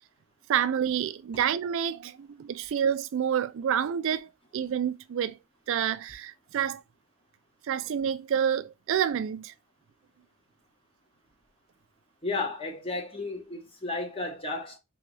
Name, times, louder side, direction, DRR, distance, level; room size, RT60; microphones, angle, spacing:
voice 1, 0.5-5.4 5.7-6.8 7.6-9.5, right 8 dB, 60° right, 0.3 m, -28 dB
voice 2, 12.2-14.8, left 3 dB, 25° left, 1.1 m, -33 dB
3.9 x 3.4 x 3.2 m
head